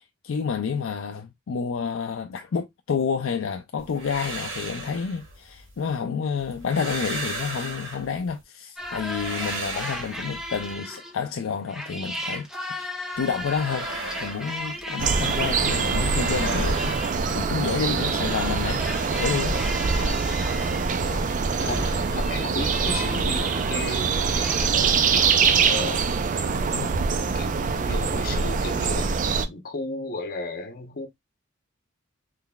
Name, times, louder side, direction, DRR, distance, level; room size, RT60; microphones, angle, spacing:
voice 1, 0.0-13.9 14.2-18.8 19.2-19.6 26.7-26.9, left 6 dB, 70° left, 0.4 m, -29 dB
sound 1, 3.8-6.0 6.4-8.4 8.8-10.7 13.1-15.3 15.6-17.8 18.2-20.7 21.0-23.4, right 1 dB, 60° right, 1.7 m, -36 dB
sound 2, 8.8-11.3 11.7-24.7, equal, 5° right, 0.7 m, -36 dB
sound 3, 15.0-29.5, right 5 dB, 40° right, 0.4 m, -24 dB
voice 2, 19.9-20.2 21.0-26.0 26.5-29.1 29.4-31.1, left 2 dB, 45° left, 0.8 m, -35 dB
3.8 x 3.3 x 2.2 m
head